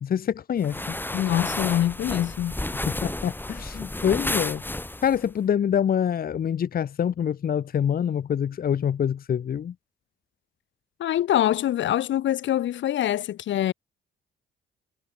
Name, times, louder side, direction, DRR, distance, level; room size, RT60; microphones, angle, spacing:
voice 1, 0.0-1.0 2.9-4.6 5.0-9.7, left 8 dB, 50° left, 1.0 m, -25 dB
sound 1, 0.6-5.3, left 1 dB, 10° left, 3.8 m, -31 dB
voice 2, 1.1-2.6 11.0-13.7, left 12 dB, 70° left, 1.2 m, -24 dB
cardioid pair, 90°, 20 cm